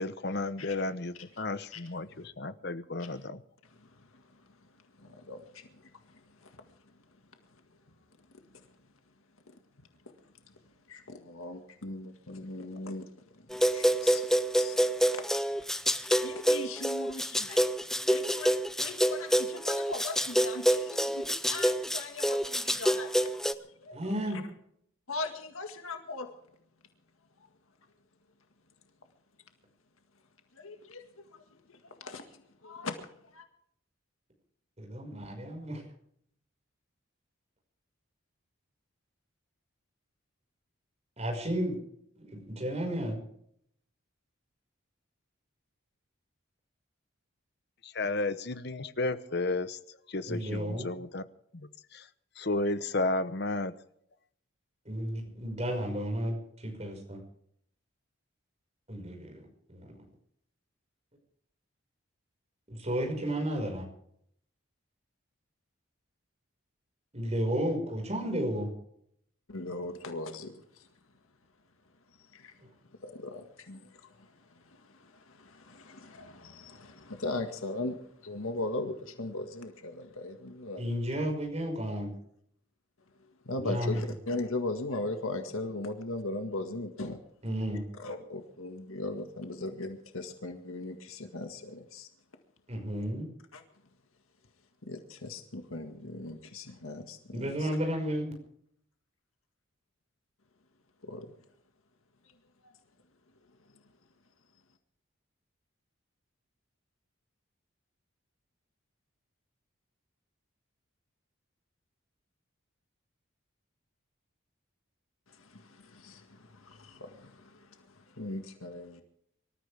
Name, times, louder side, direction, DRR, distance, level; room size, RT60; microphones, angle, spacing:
voice 1, 0.0-3.4 47.8-49.8 50.1-51.2 51.5-52.1 52.4-53.7, left 2 dB, 50° left, 13 dB, 1.0 m, -33 dB
voice 2, 3.6-6.9 7.5-7.6 8.5-8.8 10.2-10.5 10.9-13.0 13.3-14.2 14.5-14.8 15.1-15.2 16.0-17.6 18.1-24.4 25.1-26.3 30.5-33.4 69.5-70.9 72.2-72.6 73.0-80.8 83.5-87.2 88.0-92.1 93.5-93.6 94.8-97.7 101.0-101.3 102.6-102.7 103.7-103.8 115.3-119.0, left 2 dB, 85° left, 6 dB, 1.8 m, -40 dB
sound 1, 13.5-23.5, equal, ahead, 0.6 m, -27 dB
voice 3, 23.9-24.4 34.8-35.8 41.2-41.8 42.2-43.2 50.3-50.9 54.9-57.2 58.9-59.9 62.7-63.9 67.1-68.7 72.6-72.7 80.8-82.1 83.6-84.0 87.4-87.8 92.7-93.3 97.3-98.3, equal, 30° right, 2 dB, 5.4 m, -33 dB
25.5 x 13.5 x 3.5 m, 0.70 s
head